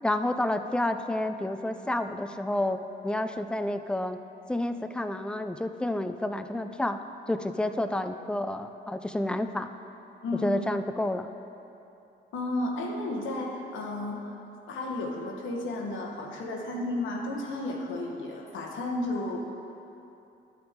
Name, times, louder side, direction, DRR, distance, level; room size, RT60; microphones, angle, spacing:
voice 1, 0.0-4.2 4.5-7.0 7.3-9.7 10.4-11.3, left 1 dB, 5° left, 9 dB, 0.4 m, -30 dB
voice 2, 12.3-14.4 14.7-19.4, left 2 dB, 75° left, 0 dB, 1.2 m, -33 dB
12.0 x 6.0 x 3.6 m, 2.8 s
cardioid pair, 90°, 20 cm